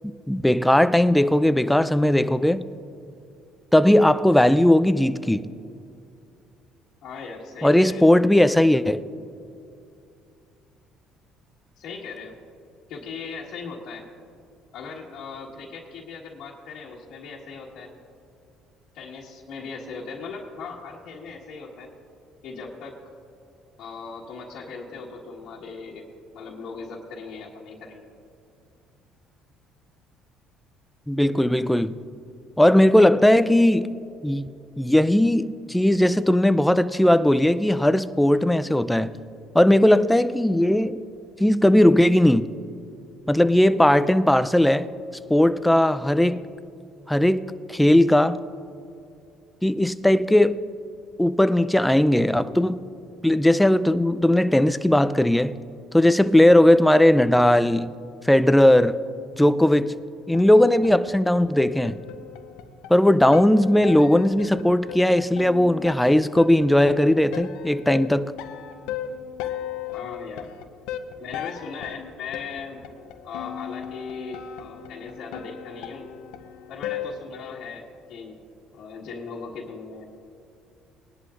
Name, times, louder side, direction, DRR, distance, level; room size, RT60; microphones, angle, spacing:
voice 1, 0.3-2.6 3.7-5.5 7.6-9.0 31.1-31.9 32.6-33.9 34.2-34.5 34.8-39.1 39.5-41.0 41.4-42.5 43.3-44.9 45.3-46.4 47.1-47.4 47.7-48.4 49.6-50.6 51.2-52.8 53.2-55.5 55.9-57.9 58.3-59.0 59.4-60.0 60.3-62.0 62.9-68.3, left 1 dB, 5° left, 0.4 m, -18 dB
voice 2, 7.0-8.1 11.8-12.4 12.9-14.0 14.7-17.9 18.9-21.9 22.4-23.0 23.8-26.1 26.3-28.1 69.9-70.5 71.2-72.8 73.2-76.1 76.7-78.4 78.7-80.1, left 5 dB, 65° left, 1.6 m, -38 dB
sound 1, 60.3-77.2, left 9 dB, 85° left, 0.7 m, -37 dB
20.0 x 11.0 x 2.5 m
supercardioid pair, 80°, 0 cm